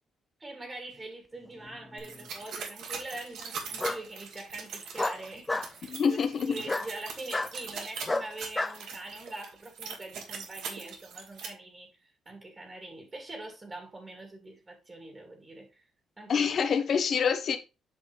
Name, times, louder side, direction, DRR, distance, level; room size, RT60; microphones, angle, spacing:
voice 1, 0.4-6.2 6.5-15.9 16.2-16.8, right 2 dB, 25° right, 2.3 m, -43 dB
Bark, 1.6-2.3 3.8-4.0 5.0-5.7 6.6-6.9 7.3-7.5 8.1-8.8, left 2 dB, 15° left, 0.5 m, -31 dB
sound 1, 2.0-11.5, right 5 dB, 80° right, 1.9 m, -41 dB
voice 2, 5.9-6.5 16.3-17.6, left 6 dB, 55° left, 1.1 m, -26 dB
8.4 x 5.2 x 3.2 m
cardioid pair, 90°, 0 cm